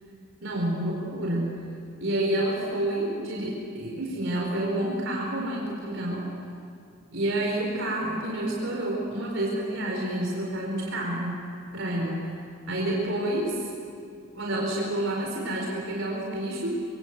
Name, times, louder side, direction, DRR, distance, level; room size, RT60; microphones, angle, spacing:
voice 1, 0.4-1.6 2.0-6.2 7.1-11.3 11.7-12.3 12.7-13.7 14.3-16.7, right 1 dB, 65° right, -2 dB, 4.8 m, -29 dB
27.0 x 23.5 x 8.1 m, 2.4 s
head